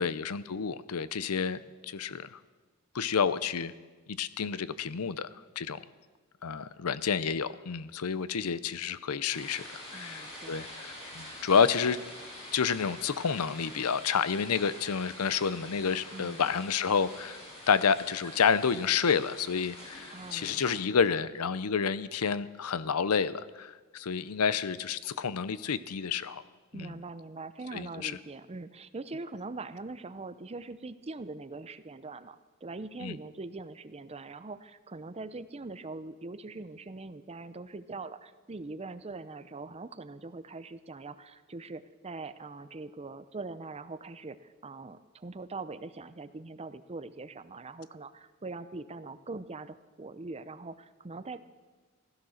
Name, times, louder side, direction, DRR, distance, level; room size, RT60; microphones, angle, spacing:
voice 1, 0.0-2.4 2.9-3.7 4.1-5.3 5.6-5.8 6.4-9.6 9.9-12.0 12.5-17.4 17.7-26.4 26.7-26.9 27.7-28.2 33.0-33.2, left 6 dB, 90° left, 16 dB, 0.6 m, -29 dB
sound 1, 9.3-20.8, left 1 dB, 30° left, 5.8 m, -46 dB
voice 2, 9.9-10.6 16.1-16.5 20.1-20.8 26.7-51.5, right 3 dB, 30° right, 13 dB, 0.6 m, -42 dB
16.0 x 13.5 x 6.4 m, 1.4 s
head